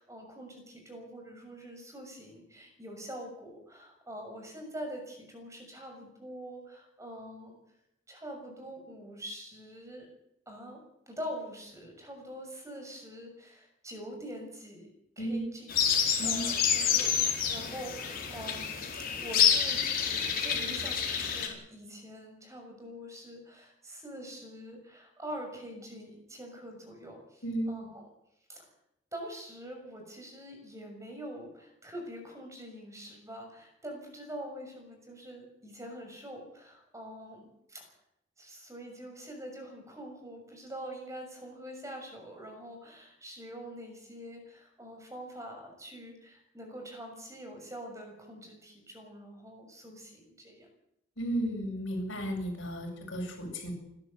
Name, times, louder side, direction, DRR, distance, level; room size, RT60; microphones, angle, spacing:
voice 1, 0.0-7.6 8.1-10.1 10.5-10.8 11.1-14.9 15.2-15.7 16.2-18.7 19.1-28.1 28.5-28.7 29.1-37.9 38.4-50.7, equal, 15° right, 3 dB, 6.5 m, -44 dB
sound 1, 15.7-21.5, left 8 dB, 45° left, 4.7 m, -28 dB
voice 2, 51.2-53.7, right 1 dB, 70° left, 1 dB, 7.7 m, -34 dB
29.5 x 12.5 x 8.2 m, 0.81 s
head